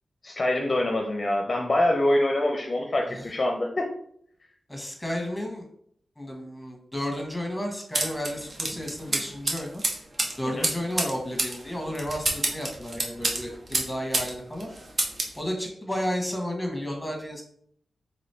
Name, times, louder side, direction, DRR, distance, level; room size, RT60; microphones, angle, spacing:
voice 1, 0.2-3.9 10.5-10.7, left 1 dB, 40° left, 1 dB, 0.6 m, -25 dB
voice 2, 4.7-5.6 6.2-9.8 10.4-14.7 15.3-17.4, equal, 10° left, 2 dB, 1.3 m, -32 dB
sound 1, 7.9-14.3 14.6-15.4, right 2 dB, 50° right, 0.9 m, -29 dB
3.0 x 3.0 x 4.3 m, 0.66 s
cardioid pair, 60°, 0 cm